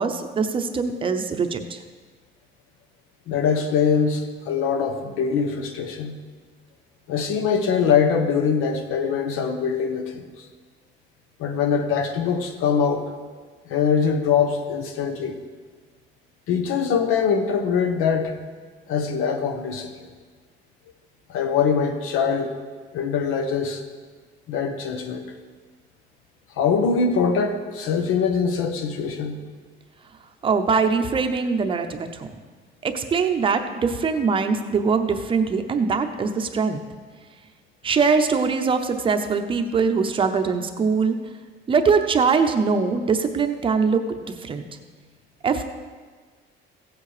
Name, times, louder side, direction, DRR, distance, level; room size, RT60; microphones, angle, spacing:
voice 1, 0.0-1.8 30.4-32.4 32.8-36.8 37.8-41.2 41.7-44.0 44.4-44.6 45.4-45.6, right 5 dB, 25° right, 6 dB, 0.7 m, -22 dB
voice 2, 3.3-6.2 7.1-10.5 11.4-13.0 13.7-15.4 16.5-18.3 18.9-20.1 21.3-22.6 22.9-23.8 24.5-25.3 26.6-29.4, left 6 dB, 85° left, 7 dB, 1.4 m, -23 dB
16.0 x 8.4 x 4.9 m, 1.5 s
cardioid pair, 175°, 21 cm